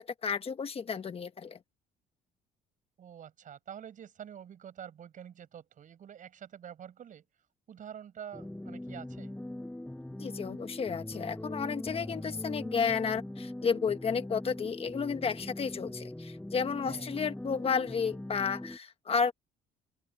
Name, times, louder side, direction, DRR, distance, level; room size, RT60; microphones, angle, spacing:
voice 1, 0.0-1.6 10.2-19.3, left 6 dB, 35° left, 1.3 m, -32 dB
voice 2, 3.0-7.2 7.7-9.4 16.8-17.1, right 9 dB, 50° right, 5.8 m, -47 dB
sound 1, 8.3-18.8, left 1 dB, 5° left, 4.5 m, -41 dB
open air
cardioid pair, 110°, 17 cm